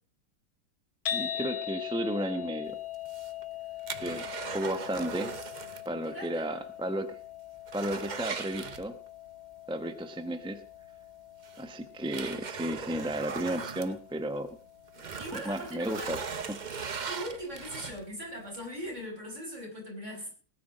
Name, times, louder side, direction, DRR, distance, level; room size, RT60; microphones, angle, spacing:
sound 1, 1.1-17.3, left 11 dB, 80° left, 1.8 m, -42 dB
voice 1, 1.1-2.8 4.0-4.2 4.5-5.4 5.8-7.2 7.7-9.0 9.7-10.6 11.6-14.6 15.3-16.2 16.5-16.6, right 1 dB, 5° right, 9 dB, 0.5 m, -33 dB
sound 2, 2.9-5.9 6.2-6.3 6.8-6.9 7.2-9.3 10.7-10.8 11.4-14.5 14.9-18.2 18.7-18.8, right 5 dB, 55° right, 0.5 m, -39 dB
voice 2, 6.0-6.7 15.2-16.2 17.1-20.3, equal, 35° right, -1 dB, 5.6 m, -40 dB
19.5 x 9.4 x 5.0 m, 0.41 s
omnidirectional pair, 2.1 m